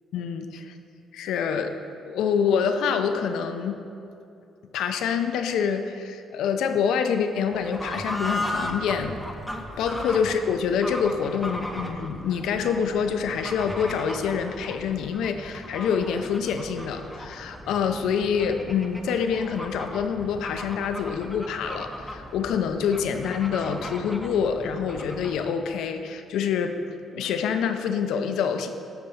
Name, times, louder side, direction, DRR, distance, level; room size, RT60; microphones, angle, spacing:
voice 1, 0.1-0.7 1.1-1.8 2.1-3.8 4.7-9.2 9.8-26.8 27.1-28.7, left 7 dB, 85° left, 7 dB, 0.5 m, -26 dB
Fowl / Bird, 7.4-25.5, left 1 dB, 5° left, 0.7 m, -37 dB
8.6 x 4.5 x 5.4 m, 2.6 s
cardioid pair, 90°, 0 cm